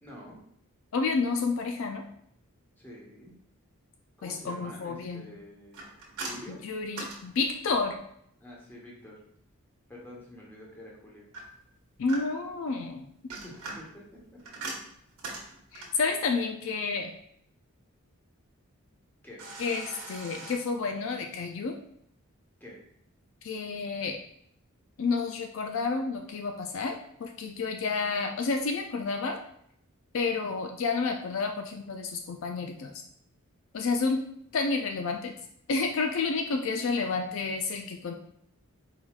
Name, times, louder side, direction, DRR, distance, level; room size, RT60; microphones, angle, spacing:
voice 1, 0.0-0.4 2.8-3.3 4.2-5.8 6.2-6.6 8.4-9.2 9.9-11.3 13.4-14.2 19.2-19.4 22.6-22.8, left 1 dB, 10° left, -4 dB, 1.0 m, -47 dB
voice 2, 0.9-2.0 4.2-5.3 6.5-8.0 12.0-13.1 15.7-17.1 19.6-21.8 23.4-24.2 25.0-29.4 30.1-33.0 33.7-34.2 34.5-35.3 35.7-38.1, left 4 dB, 60° left, 4 dB, 0.4 m, -30 dB
sound 1, 5.7-8.0 11.3-12.6 13.1-16.1 19.4-20.6, right 3 dB, 80° right, 1.2 m, -41 dB
4.6 x 3.9 x 2.4 m, 0.70 s
head